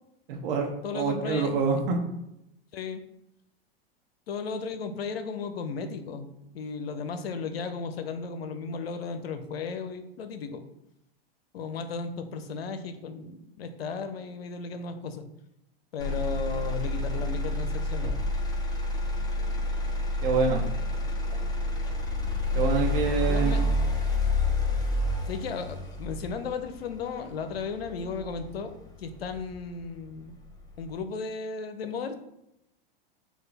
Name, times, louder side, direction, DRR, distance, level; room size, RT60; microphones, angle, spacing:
voice 1, 0.3-0.7 0.9-2.0 20.2-20.7 22.5-23.7, right 5 dB, 65° right, 2 dB, 1.0 m, -26 dB
voice 2, 0.8-1.5 2.7-3.0 4.3-6.3 6.5-10.7 11.5-15.2 15.9-18.1 23.3-23.6 25.3-30.4 30.8-32.1, left 5 dB, 85° left, 8 dB, 0.6 m, -35 dB
Motor vehicle (road), 16.0-30.0 30.5-31.0, left 2 dB, 15° left, 0.8 m, -29 dB
6.3 x 2.4 x 3.4 m, 0.83 s
hypercardioid pair, 110°, 30 cm